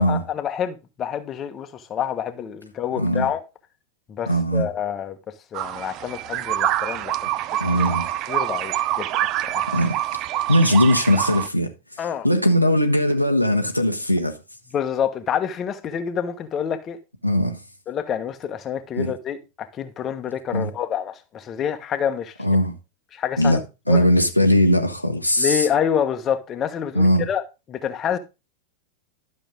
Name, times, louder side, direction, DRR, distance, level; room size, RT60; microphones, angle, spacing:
voice 1, 0.0-3.4 4.1-5.2 5.5-7.1 7.7-7.9 8.3-9.2 9.5-9.7 12.0-12.3 14.7-17.0 17.9-22.3 23.1-23.6 23.9-24.0 25.4-27.4 27.7-28.2, left 8 dB, 25° left, 1.2 m, -27 dB
voice 2, 3.0-3.3 4.3-4.7 7.6-8.1 9.7-10.0 10.5-14.4 17.2-17.6 19.0-19.1 20.5-20.7 22.4-22.7 23.4-23.6 23.9-25.7 26.9-27.3, equal, 90° left, 1.0 m, -19 dB
sound 1, 5.5-11.5, right 13 dB, 35° right, 0.5 m, -26 dB
12.0 x 6.6 x 3.8 m
figure-of-eight pair, 90°, 0 cm